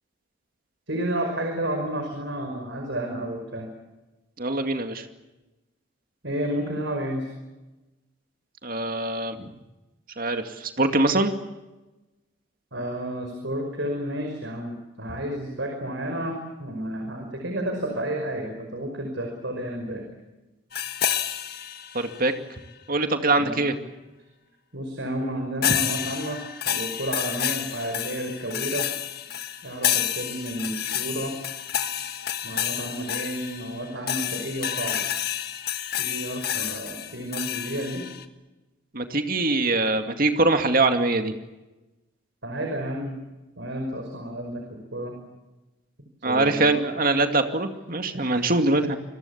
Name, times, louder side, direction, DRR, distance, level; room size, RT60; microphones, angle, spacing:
voice 1, 0.9-3.7 6.2-7.3 12.7-20.0 23.4-23.6 24.7-28.9 29.6-31.3 32.4-35.0 36.0-38.0 42.4-43.1 43.6-45.1 46.2-46.7 48.1-48.5, right 1 dB, 65° right, 3 dB, 5.5 m, -31 dB
voice 2, 4.4-5.1 8.6-9.5 10.2-11.3 21.9-22.3 22.9-23.7 38.9-41.3 46.2-49.0, right 2 dB, 45° right, 6 dB, 2.3 m, -23 dB
sound 1, 20.7-22.3 25.6-38.2, left 10 dB, 50° left, 1.7 m, -29 dB
28.0 x 22.5 x 7.3 m, 1.1 s
head